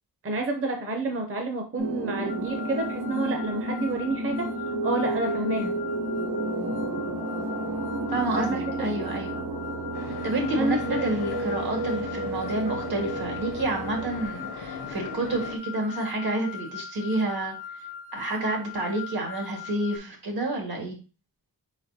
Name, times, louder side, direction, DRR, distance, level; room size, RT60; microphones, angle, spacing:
voice 1, 0.2-4.5 4.8-5.8 8.4-8.6 10.6-11.0, right 2 dB, 35° right, 3 dB, 0.6 m, -29 dB
Super ball-long, 1.8-14.3, right 1 dB, 55° right, 1.1 m, -31 dB
sound 1, 2.3-20.0, left 8 dB, 25° left, 0.4 m, -41 dB
voice 2, 8.1-9.4 10.2-17.6 18.1-21.0, right 2 dB, 75° right, 1 dB, 1.8 m, -29 dB
sound 2, 9.9-15.6, left 5 dB, 85° left, 0.8 m, -39 dB
4.7 x 4.1 x 2.7 m, 0.33 s
wide cardioid pair, 130°, 38 cm